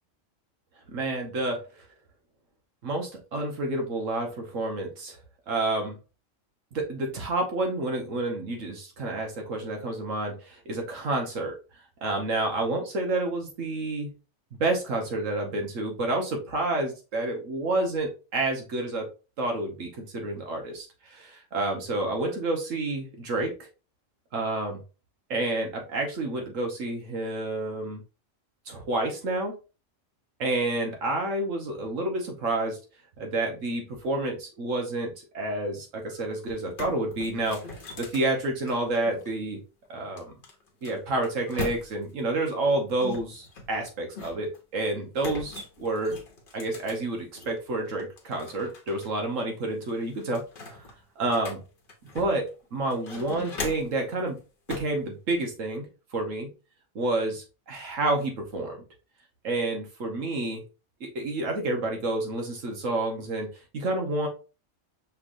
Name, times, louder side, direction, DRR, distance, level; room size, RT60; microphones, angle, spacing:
voice 1, 0.9-1.6 2.8-5.2 5.5-6.0 6.7-11.5 12.0-14.1 14.5-19.1 19.4-23.7 24.3-24.8 25.3-28.0 28.7-29.5 30.4-32.8 33.2-37.6 38.0-39.6 39.9-40.3 40.8-46.2 46.5-50.8 51.2-51.6 52.1-54.4 54.7-55.9 56.1-56.5 56.9-58.8 59.4-60.6 61.0-63.5 63.7-64.3, right 2 dB, 85° right, 2 dB, 1.6 m, -29 dB
sound 1, 36.1-36.2 36.5-39.3 40.2-42.2 43.0-44.6 45.2-47.6 48.0-49.1 49.4-49.5 49.9-52.5 52.9-54.0 54.7-55.0, left 3 dB, 45° left, 1.0 m, -40 dB
5.6 x 3.4 x 2.6 m, 0.31 s
omnidirectional pair, 1.3 m